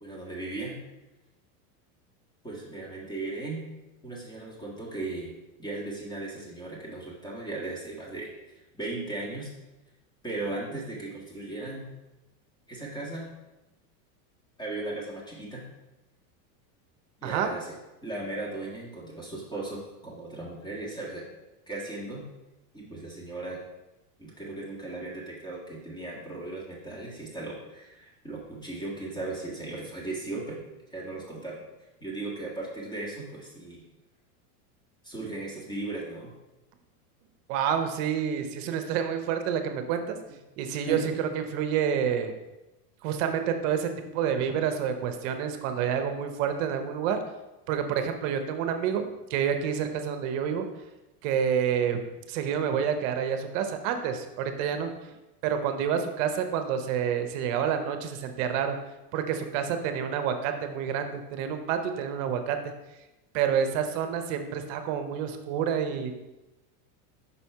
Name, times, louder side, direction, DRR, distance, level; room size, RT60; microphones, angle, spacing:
voice 1, 0.0-0.8 2.4-3.6 4.0-5.3 5.6-8.3 8.5-9.5 10.2-11.9 12.7-13.3 14.6-15.6 17.2-17.7 18.0-21.3 21.7-22.3 22.7-23.6 24.2-30.6 30.9-31.6 32.0-33.8 35.0-36.3 40.9-41.1, right 2 dB, 10° left, -4 dB, 1.6 m, -37 dB
voice 2, 17.2-17.5 37.5-40.2 40.6-42.3 43.0-47.2 47.7-50.7 51.2-52.0 52.3-54.9 55.4-58.8 59.1-62.6 63.3-66.1, right 8 dB, 55° right, 7 dB, 0.8 m, -28 dB
5.7 x 4.2 x 4.6 m, 1.0 s
supercardioid pair, 140°, 46 cm